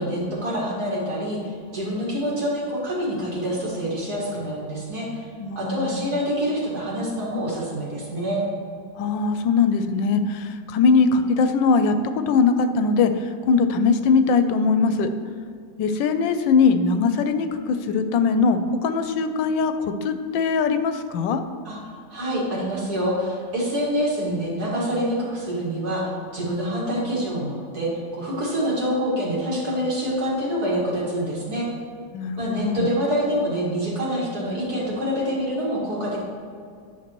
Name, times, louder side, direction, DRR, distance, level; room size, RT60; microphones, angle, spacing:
voice 1, 0.0-5.2 5.6-8.4 21.6-21.8 22.1-31.7 32.4-36.2, equal, 55° right, -6 dB, 2.4 m, -26 dB
voice 2, 5.4-6.0 9.0-15.1 15.8-21.4 32.1-32.9, left 4 dB, 85° left, 9 dB, 1.3 m, -21 dB
10.0 x 5.6 x 3.0 m, 2.2 s
omnidirectional pair, 2.0 m